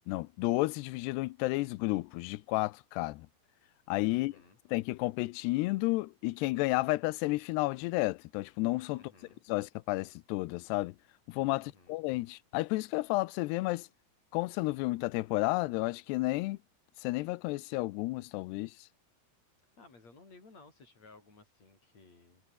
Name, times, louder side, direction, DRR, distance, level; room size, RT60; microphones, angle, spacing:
voice 1, 0.1-3.3 3.9-4.4 4.7-9.0 9.5-11.0 11.3-13.9 14.3-16.6 17.0-18.7, left 21 dB, 85° left, 2.8 m, -32 dB
voice 2, 4.1-4.6 9.0-9.4 11.6-12.0 19.8-22.4, left 3 dB, 40° left, 9.0 m, -58 dB
omnidirectional pair, 4.7 m